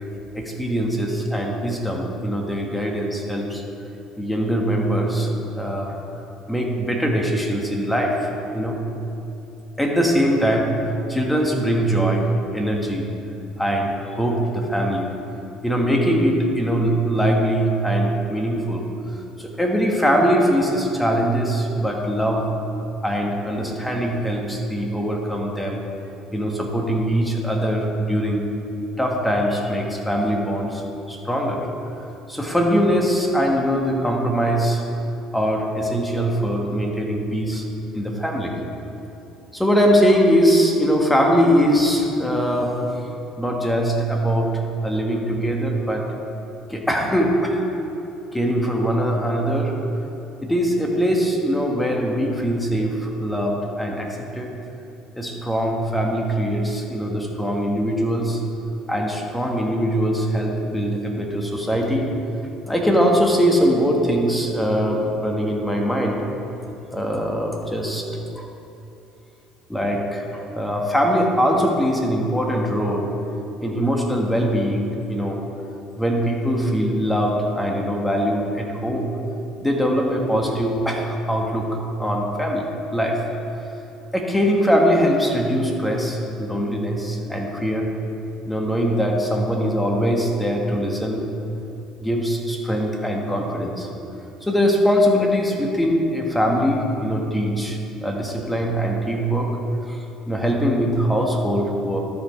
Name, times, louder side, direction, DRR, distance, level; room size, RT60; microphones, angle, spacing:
voice 1, 0.3-3.6 4.2-6.0 6.5-8.8 9.8-10.7 11.1-13.0 13.6-15.1 15.6-18.8 19.4-22.5 23.0-25.8 26.3-28.4 29.0-30.8 31.1-31.6 32.3-34.8 35.3-37.6 37.9-38.5 39.5-43.0 43.4-44.5 44.8-46.0 46.7-47.6 48.3-49.7 50.4-54.5 55.2-58.4 58.9-62.1 62.7-66.2 66.9-68.1 68.3-68.5 69.7-73.1 73.6-75.4 76.0-79.1 79.6-81.7 82.0-83.2 84.1-87.9 88.4-91.2 92.0-93.9 94.4-99.5 99.9-102.0, equal, 5° left, 0 dB, 1.6 m, -22 dB
13.0 x 5.3 x 4.5 m, 2.9 s
supercardioid pair, 80°, 0 cm